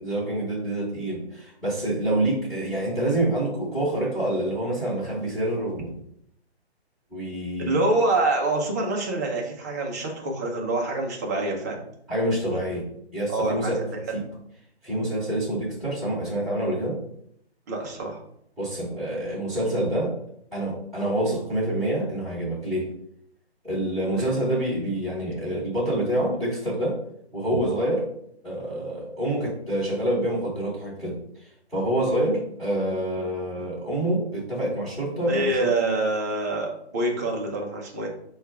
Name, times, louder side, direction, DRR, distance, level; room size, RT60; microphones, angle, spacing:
voice 1, 0.0-5.9 7.1-7.8 12.1-13.8 14.1-14.2 14.8-17.0 18.6-20.2 20.5-22.9 23.6-27.0 27.3-28.1 28.4-31.4 31.7-35.7, right 1 dB, ahead, -11 dB, 1.0 m, -27 dB
voice 2, 7.6-11.8 13.3-14.0 17.7-18.2 24.1-24.3 35.3-38.1, right 2 dB, 15° right, 0 dB, 0.5 m, -26 dB
4.4 x 2.4 x 4.7 m, 0.71 s
figure-of-eight pair, 135°, 33 cm